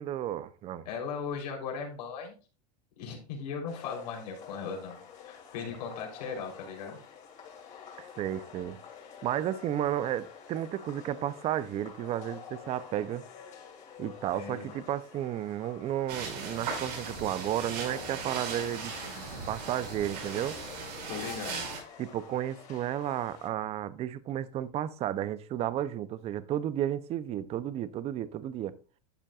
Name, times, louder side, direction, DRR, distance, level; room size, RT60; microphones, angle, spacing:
voice 1, 0.0-0.9 8.0-8.8 9.2-13.2 14.0-20.6 22.0-28.7, right 11 dB, 30° right, 0.5 m, -33 dB
voice 2, 0.9-2.3 3.0-5.0 5.2-7.0 14.3-14.7 21.1-21.7, left 6 dB, 75° left, 3.6 m, -38 dB
sound 1, 3.7-23.5, left 7 dB, 35° left, 2.6 m, -49 dB
sound 2, 16.1-21.8, right 5 dB, 85° right, 4.8 m, -38 dB
12.0 x 7.4 x 2.4 m
supercardioid pair, 130°, 21 cm